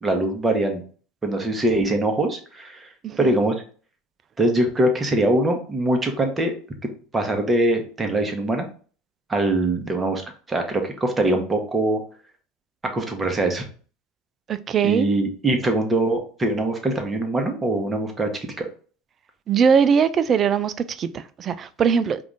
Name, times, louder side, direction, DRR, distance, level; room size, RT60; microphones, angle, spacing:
voice 1, 0.0-0.8 1.2-2.9 3.2-3.6 4.4-6.5 6.8-8.7 9.3-10.2 10.5-12.0 12.9-13.7 14.8-18.3 18.6-18.7, right 1 dB, 20° right, 1.1 m, -22 dB
voice 2, 3.0-3.4 14.5-15.1 19.5-22.2, right 6 dB, 35° right, 0.4 m, -21 dB
4.9 x 2.5 x 3.4 m
hypercardioid pair, 75°, 0 cm